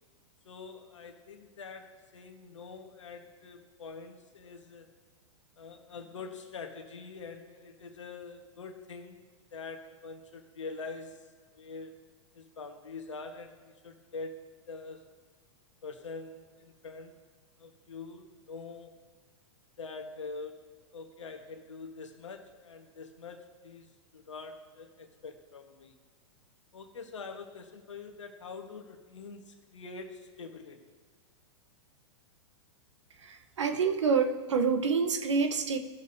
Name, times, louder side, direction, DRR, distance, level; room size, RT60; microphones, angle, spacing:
voice 1, 0.4-4.9 5.6-9.2 9.5-11.2 11.5-11.9 12.3-15.0 15.8-17.2 17.6-19.0 19.8-26.0 26.7-30.8, left 4 dB, 85° left, 4 dB, 1.4 m, -45 dB
voice 2, 33.2-35.8, right 5 dB, 80° right, 7 dB, 1.0 m, -27 dB
18.0 x 6.9 x 2.7 m, 1.4 s
hypercardioid pair, 110°, 15 cm